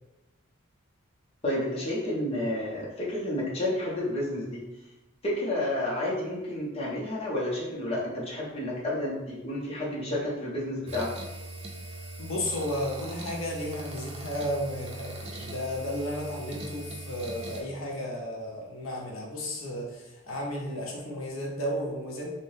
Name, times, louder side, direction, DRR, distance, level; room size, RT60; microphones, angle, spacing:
voice 1, 1.4-4.6 5.2-11.1, left 1 dB, 30° left, -6 dB, 0.6 m, -30 dB
sound 1, 10.9-17.6, right 2 dB, 30° right, 0.3 m, -40 dB
voice 2, 12.2-22.3, equal, 70° left, -1 dB, 0.6 m, -33 dB
2.7 x 2.1 x 3.1 m, 1.0 s
head